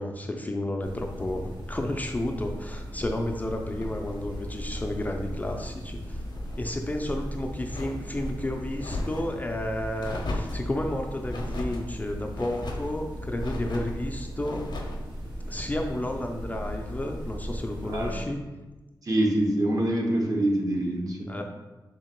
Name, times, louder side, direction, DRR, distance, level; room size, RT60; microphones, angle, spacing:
voice 1, 0.0-6.2 6.6-14.6 15.5-18.4 21.3-21.4, left 1 dB, 20° left, 2 dB, 0.4 m, -32 dB
sound 1, 0.8-18.2, equal, 80° right, 1.4 m, -37 dB
sound 2, 3.7-5.7 6.1-6.6 7.0-8.3 8.7-9.4 10.0-10.7 11.3-11.8 12.3-12.9 13.4-14.0 14.4-15.0, left 2 dB, 65° left, 0.6 m, -38 dB
voice 2, 17.9-18.2 19.0-21.4, right 1 dB, 50° right, 0 dB, 0.8 m, -25 dB
3.8 x 2.9 x 4.4 m, 1.1 s
wide cardioid pair, 100°, 8 cm